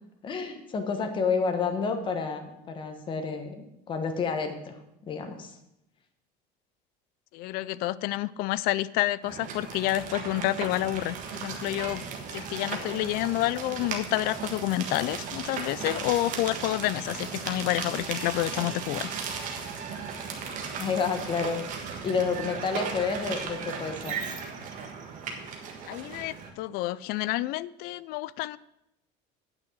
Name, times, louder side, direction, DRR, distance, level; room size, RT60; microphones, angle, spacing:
voice 1, 0.2-4.7 5.0-5.5 20.8-21.6 22.0-24.2, left 5 dB, 25° left, 6 dB, 1.1 m, -30 dB
voice 2, 7.3-12.0 12.3-19.1 25.9-28.6, left 16 dB, 55° left, 19 dB, 0.4 m, -29 dB
sound 1, 9.2-26.5, right 6 dB, 45° right, 1.6 m, -36 dB
8.8 x 6.0 x 7.7 m, 0.86 s
cardioid pair, 165°, 18 cm